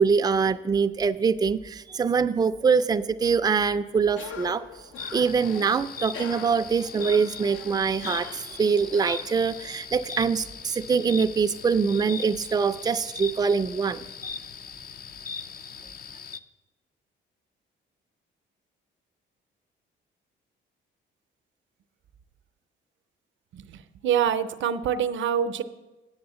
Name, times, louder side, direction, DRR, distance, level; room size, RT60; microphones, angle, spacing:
voice 1, 0.0-4.6 5.1-14.1, right 5 dB, 20° right, 9 dB, 0.4 m, -24 dB
Cough, 4.1-9.9, left 6 dB, 80° left, 0.8 m, -43 dB
sound 1, 5.0-16.4, left 5 dB, 45° left, 0.5 m, -40 dB
voice 2, 23.5-25.6, right 8 dB, 70° right, 11 dB, 0.7 m, -26 dB
8.8 x 6.8 x 8.1 m, 1.1 s
cardioid pair, 90°, 20 cm